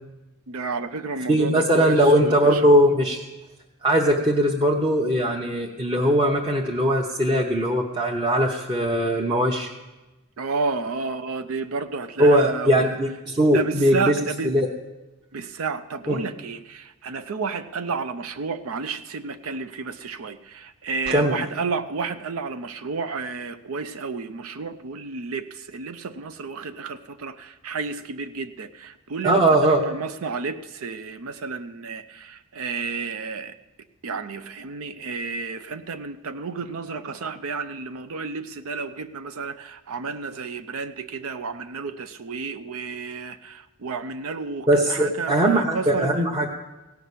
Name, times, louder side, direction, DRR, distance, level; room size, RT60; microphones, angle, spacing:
voice 1, 0.5-2.6 10.4-13.0 13.5-14.5 15.3-33.5 34.0-46.3, right 4 dB, 70° right, 10 dB, 0.5 m, -31 dB
voice 2, 1.3-3.2 3.8-9.7 12.2-14.2 14.4-14.7 16.1-16.2 21.1-21.4 29.2-29.8 44.7-46.5, right 1 dB, 20° right, -3 dB, 0.9 m, -20 dB
16.5 x 5.9 x 8.3 m, 1.1 s
head